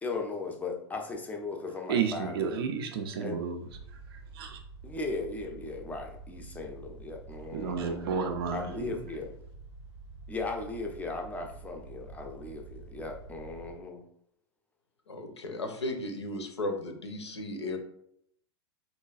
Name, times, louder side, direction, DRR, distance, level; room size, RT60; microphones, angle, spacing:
voice 1, 0.0-2.6 3.2-3.4 4.8-8.1 8.5-9.3 10.3-14.0, left 3 dB, 10° left, 3 dB, 0.4 m, -37 dB
voice 2, 1.9-4.6 7.5-9.0, right 6 dB, 60° right, 5 dB, 0.4 m, -32 dB
sound 1, 3.7-13.7, right 3 dB, 90° right, 0.8 m, -48 dB
voice 3, 15.1-17.8, left 1 dB, 75° left, 6 dB, 0.5 m, -35 dB
4.0 x 2.2 x 2.3 m, 0.71 s
figure-of-eight pair, 95°, 14 cm